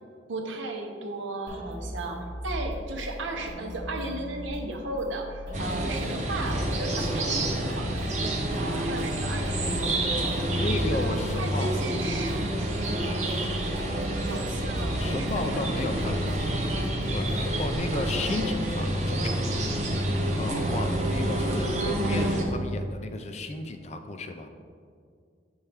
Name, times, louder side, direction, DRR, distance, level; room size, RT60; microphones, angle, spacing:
voice 1, 0.3-8.1 8.5-10.5 10.9-13.4 14.3-16.6 17.9-18.1, right 2 dB, 85° right, 3 dB, 0.8 m, -36 dB
sound 1, 1.5-17.8, equal, 70° right, 1.3 m, -38 dB
sound 2, 5.5-22.4, right 1 dB, 40° right, 0.7 m, -28 dB
voice 2, 10.6-11.8 15.0-16.5 16.9-19.2 19.5-19.6 20.3-24.5, left 2 dB, 35° left, 6 dB, 0.4 m, -33 dB
7.4 x 4.4 x 3.3 m, 2.2 s
head